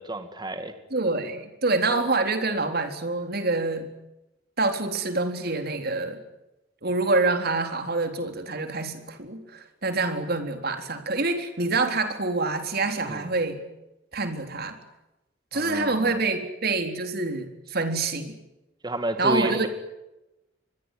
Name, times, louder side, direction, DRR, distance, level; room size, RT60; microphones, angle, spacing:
voice 1, 0.0-0.7 13.1-13.2 15.5-16.2 18.8-19.7, right 1 dB, 20° right, 8 dB, 2.2 m, -30 dB
voice 2, 0.9-3.9 4.6-6.2 6.8-13.6 14.1-14.8 15.5-18.3 19.2-19.7, right 3 dB, 50° right, 6 dB, 3.9 m, -26 dB
25.0 x 22.0 x 9.4 m, 0.95 s
head